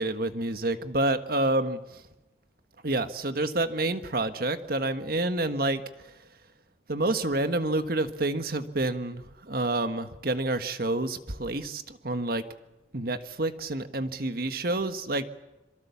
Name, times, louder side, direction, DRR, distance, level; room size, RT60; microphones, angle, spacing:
voice 1, 0.0-1.8 2.8-5.8 6.9-9.2 9.5-12.4 12.9-15.3, right 2 dB, 55° right, 9 dB, 1.5 m, -28 dB
26.5 x 23.5 x 7.2 m, 1.0 s
head